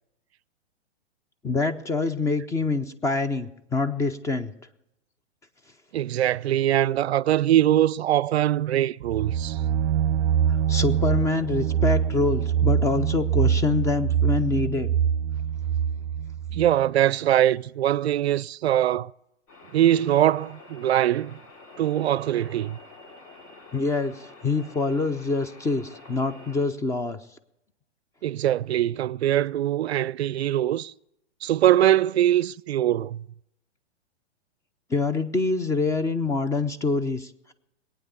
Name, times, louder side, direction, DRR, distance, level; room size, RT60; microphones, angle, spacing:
voice 1, 1.4-4.5 10.5-14.9 23.7-27.2 34.9-37.5, left 3 dB, 10° left, 0.5 m, -25 dB
voice 2, 5.9-9.6 16.5-19.1 19.7-21.4 21.8-22.8 28.2-30.9 31.4-33.2, right 12 dB, 65° right, 0.5 m, -22 dB
sound 1, 9.0-16.7, right 9 dB, 35° right, 0.7 m, -24 dB
sound 2, 19.5-26.7, left 3 dB, 45° left, 3.5 m, -48 dB
21.0 x 9.0 x 6.8 m
hypercardioid pair, 120°, 34 cm